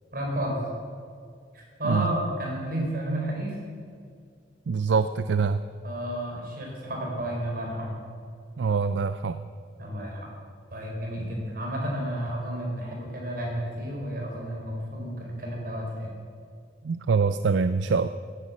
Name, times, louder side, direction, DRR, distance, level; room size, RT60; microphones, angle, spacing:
voice 1, 0.1-0.6 1.5-3.6 5.8-7.9 9.8-10.3 10.7-16.1, right 1 dB, 55° right, -1 dB, 4.4 m, -31 dB
voice 2, 4.7-5.6 8.6-9.5 16.8-18.1, right 5 dB, 75° right, 12 dB, 0.4 m, -24 dB
17.5 x 10.0 x 7.3 m, 2.2 s
head